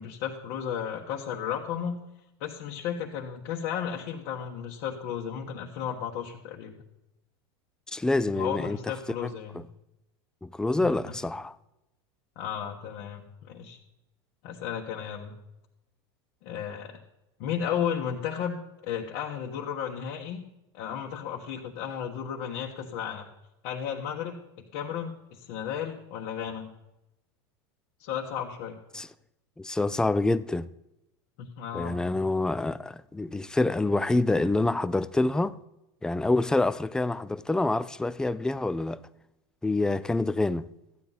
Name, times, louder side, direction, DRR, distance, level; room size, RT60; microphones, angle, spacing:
voice 1, 0.0-2.0 2.4-6.8 8.4-9.6 10.8-11.1 12.4-13.8 14.4-15.4 16.4-17.0 17.4-20.4 20.7-23.3 23.6-24.4 24.7-26.7 28.0-28.8 31.4-32.3, left 8 dB, 60° left, 1.3 m, -34 dB
voice 2, 7.9-8.8 9.2-9.6 10.4-11.5 28.9-29.1 29.6-30.7 31.7-35.6 36.0-39.0 39.6-40.7, left 2 dB, 5° left, 0.3 m, -27 dB
13.5 x 9.1 x 4.0 m
supercardioid pair, 115°, 14 cm